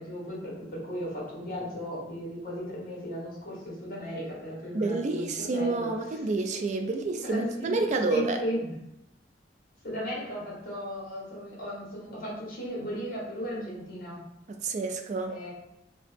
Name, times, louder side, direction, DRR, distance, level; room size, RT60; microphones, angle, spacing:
voice 1, 0.0-6.2 7.2-7.8 8.1-8.7 9.8-14.2 15.3-15.5, equal, 50° left, -5 dB, 1.4 m, -36 dB
voice 2, 4.7-8.4 14.6-15.4, right 3 dB, 40° right, 4 dB, 0.3 m, -29 dB
2.9 x 2.7 x 3.3 m, 0.83 s
head